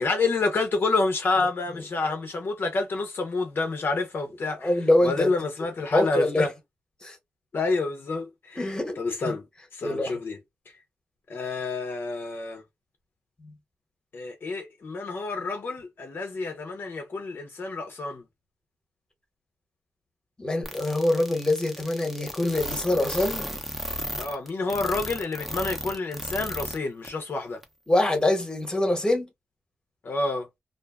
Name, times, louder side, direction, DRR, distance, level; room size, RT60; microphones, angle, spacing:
voice 1, 0.0-4.7 5.0-6.5 7.5-8.7 9.0-9.4 9.7-10.4 11.3-12.6 14.1-18.2 24.2-27.6 30.0-30.5, left 3 dB, 50° left, 0.6 m, -28 dB
voice 2, 4.6-5.3 5.9-6.5 7.0-7.1 8.6-9.0 9.2-9.3 9.8-10.2 13.4-13.5 20.4-23.4 27.9-29.3, left 1 dB, 15° left, 1.0 m, -24 dB
sound 1, 20.6-26.8 27.0-27.1 27.6-27.7, equal, 5° right, 0.7 m, -34 dB
2.5 x 2.2 x 2.3 m
cardioid pair, 85°, 4 cm